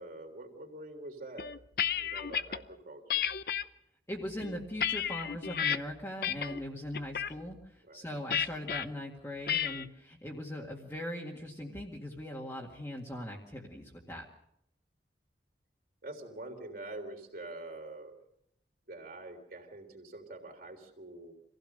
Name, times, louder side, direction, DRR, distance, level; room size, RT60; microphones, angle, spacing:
voice 1, 0.0-1.5 1.9-3.2 7.8-8.1 16.0-18.2 18.9-21.3, right 2 dB, 55° right, 2 dB, 3.5 m, -45 dB
sound 1, 1.4-2.6 3.1-3.6 4.2-5.8 6.2-6.6 6.9-7.3 8.3-8.8 9.5-9.9, left 8 dB, 55° left, 0.7 m, -32 dB
voice 2, 4.1-14.2, left 1 dB, 15° left, -3 dB, 2.0 m, -40 dB
25.5 x 16.0 x 6.7 m, 0.78 s
head